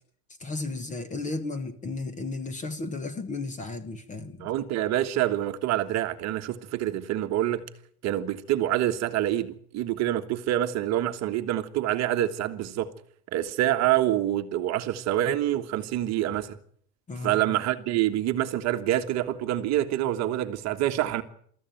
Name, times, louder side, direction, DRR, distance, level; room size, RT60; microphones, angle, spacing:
voice 1, 0.4-4.5 17.1-17.6, left 3 dB, 15° left, 1.2 m, -34 dB
voice 2, 4.4-7.6 8.0-12.9 13.3-16.6 17.2-21.2, right 13 dB, 35° right, 1.5 m, -26 dB
25.0 x 14.0 x 9.2 m
supercardioid pair, 160°, 45 cm